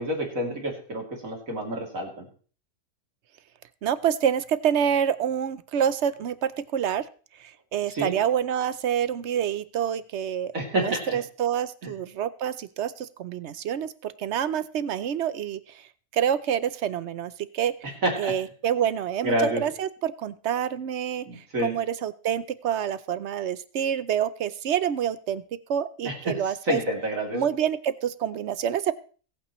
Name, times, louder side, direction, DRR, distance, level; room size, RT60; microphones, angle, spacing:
voice 1, 0.0-2.3 7.9-8.2 10.5-11.2 11.8-11.9 18.0-18.3 19.2-19.6 21.2-21.7 26.0-26.4 26.7-27.4, right 1 dB, 80° right, 1 dB, 3.3 m, -28 dB
voice 2, 3.8-7.1 7.4-10.5 10.8-15.9 16.1-17.7 18.2-25.4 25.7-26.8 27.3-28.9, right 9 dB, 60° right, 15 dB, 0.9 m, -27 dB
22.0 x 8.8 x 3.1 m, 0.41 s
omnidirectional pair, 1.4 m